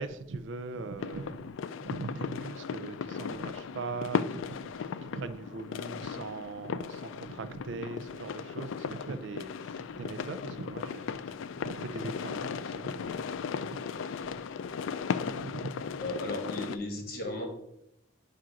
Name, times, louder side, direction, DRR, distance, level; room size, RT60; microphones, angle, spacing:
voice 1, 0.0-1.6 1.8-14.5 15.0-16.1, right 3 dB, 75° right, 0.5 m, -41 dB
sound 1, 1.0-16.8, left 6 dB, 85° left, 0.3 m, -37 dB
voice 2, 16.0-17.5, left 1 dB, 50° left, 1.4 m, -35 dB
7.5 x 2.5 x 5.7 m
head